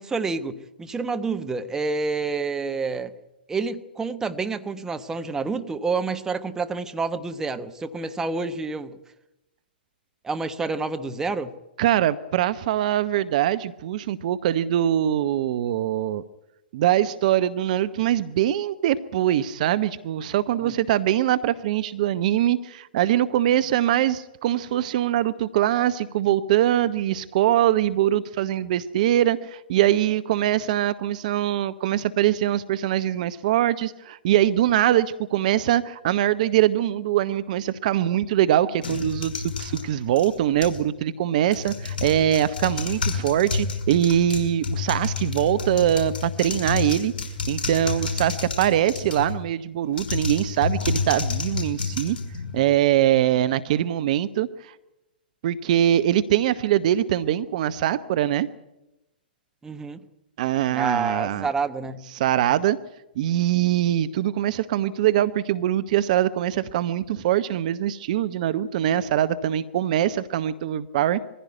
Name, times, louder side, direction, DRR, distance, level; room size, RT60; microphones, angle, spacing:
voice 1, 0.0-3.1 3.5-9.0 10.2-11.5 20.6-20.7 59.6-60.0 60.7-62.1, right 4 dB, 10° right, 8 dB, 1.1 m, -28 dB
voice 2, 11.8-16.2 16.7-47.1 47.5-52.2 52.5-54.7 55.4-58.5 60.4-61.5 62.1-62.8 63.2-71.2, right 12 dB, 50° right, 14 dB, 0.8 m, -23 dB
sound 1, 38.8-40.9 41.4-49.4 49.9-52.8, left 4 dB, 55° left, 5.6 m, -30 dB
22.0 x 15.5 x 9.4 m, 0.94 s
figure-of-eight pair, 115°, 5 cm